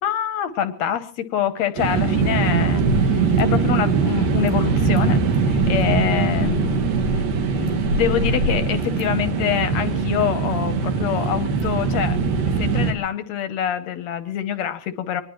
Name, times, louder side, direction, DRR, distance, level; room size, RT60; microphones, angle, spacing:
voice 1, 0.0-6.8 7.1-7.2 7.5-12.2 12.6-15.2, left 10 dB, 70° left, 11 dB, 1.8 m, -25 dB
sound 1, 1.8-12.9, right 4 dB, 85° right, 3.6 m, -21 dB
23.0 x 20.0 x 3.0 m, 0.39 s
omnidirectional pair, 3.8 m